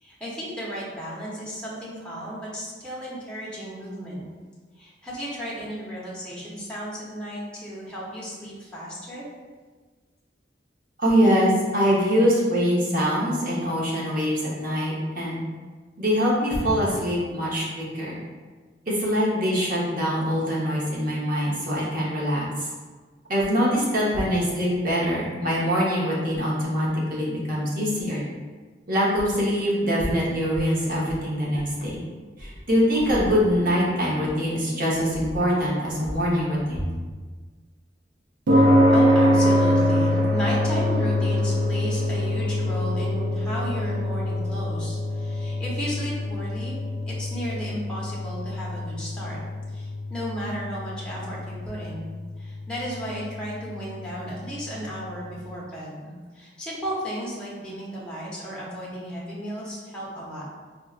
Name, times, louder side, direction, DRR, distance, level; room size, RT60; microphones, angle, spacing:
voice 1, 0.0-4.2 4.8-9.3 38.5-49.4 49.7-52.1 52.4-60.5, equal, 5° left, -7 dB, 0.7 m, -34 dB
voice 2, 11.0-15.4 16.0-18.2 18.9-22.7 23.3-28.2 28.9-32.0 32.4-36.9, equal, 50° right, -6 dB, 0.9 m, -23 dB
sound 1, 38.5-55.0, left 1 dB, 90° right, 0.6 m, -24 dB
4.3 x 2.2 x 2.4 m, 1.4 s
head